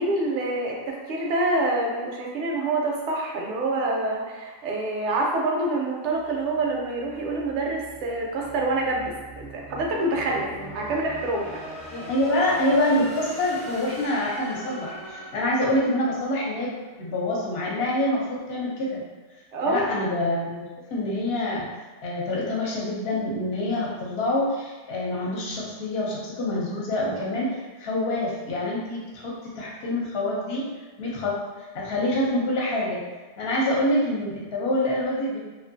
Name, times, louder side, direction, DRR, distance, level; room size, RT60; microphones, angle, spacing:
voice 1, 0.0-11.5 19.5-19.9, right 2 dB, 75° right, -1 dB, 0.9 m, -26 dB
sound 1, 6.1-17.1, right 1 dB, 45° right, 0.5 m, -42 dB
voice 2, 11.9-19.0 19.7-21.7 22.0-30.7 31.0-33.0 33.4-35.4, left 1 dB, 60° left, -4 dB, 0.9 m, -26 dB
2.6 x 2.4 x 2.5 m, 1.3 s
omnidirectional pair, 1.3 m